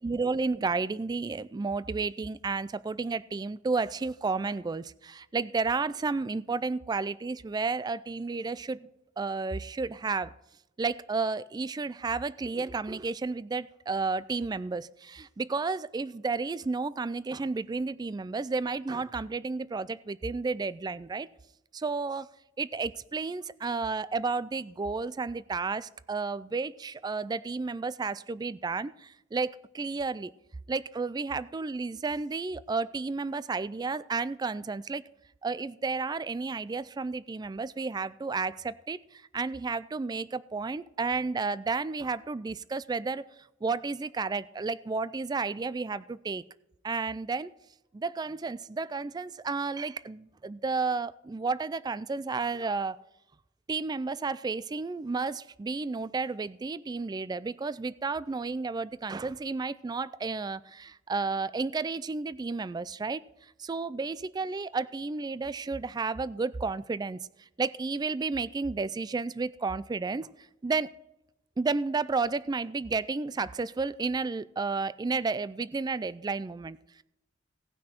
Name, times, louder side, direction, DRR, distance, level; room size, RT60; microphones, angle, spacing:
voice 1, 0.0-8.9 9.2-10.3 10.8-21.3 21.7-22.3 22.6-30.3 30.7-35.0 35.4-43.2 43.6-46.4 46.8-47.5 47.9-53.0 53.7-63.2 63.6-70.3 70.6-70.9 71.6-77.0, right 4 dB, 20° right, 0.3 m, -32 dB
17.5 x 6.1 x 4.4 m
head